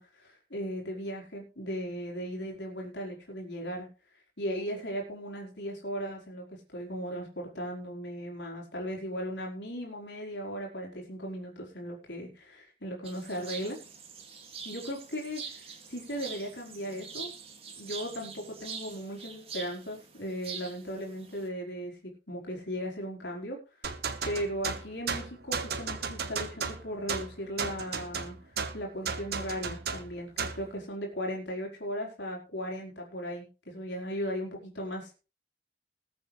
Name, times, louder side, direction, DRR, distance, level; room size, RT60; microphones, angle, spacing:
voice 1, 0.0-3.9 4.4-13.8 14.6-17.3 17.8-24.0 24.2-35.1, equal, 85° left, -1 dB, 4.4 m, -37 dB
sound 1, 13.0-21.5, right 6 dB, 35° right, 2.4 m, -44 dB
sound 2, 23.8-30.7, right 5 dB, 65° right, 1.5 m, -35 dB
21.0 x 8.0 x 3.3 m, 0.32 s
head